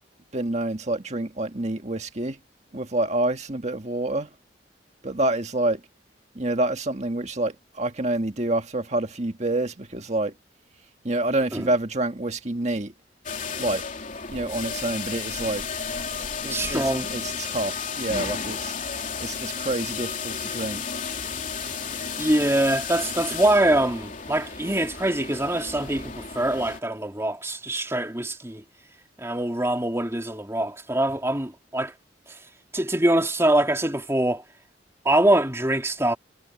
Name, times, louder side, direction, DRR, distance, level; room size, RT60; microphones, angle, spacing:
voice 1, 0.3-2.4 2.7-4.3 5.0-5.8 6.4-10.3 11.0-12.9 13.6-13.8 14.3-15.6 16.4-18.7 19.2-20.8, right 2 dB, 40° right, 1.8 m, -27 dB
sound 1, 13.2-26.8, left 6 dB, 45° left, 3.3 m, -33 dB
voice 2, 16.5-17.1 22.2-28.6 29.2-31.9 32.3-32.4 32.7-34.4 35.0-36.2, right 1 dB, 15° right, 2.9 m, -24 dB
head